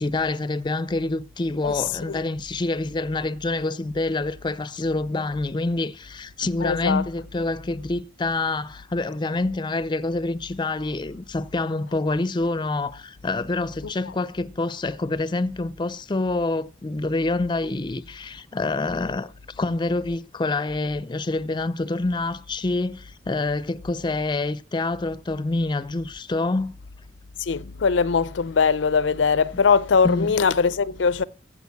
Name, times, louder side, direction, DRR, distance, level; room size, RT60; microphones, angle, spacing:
voice 1, 0.0-26.7 29.5-29.6 30.0-30.4, left 2 dB, 25° left, 0.5 m, -27 dB
voice 2, 6.6-7.0 27.4-31.2, left 5 dB, 90° left, 0.5 m, -21 dB
15.0 x 5.1 x 8.3 m
head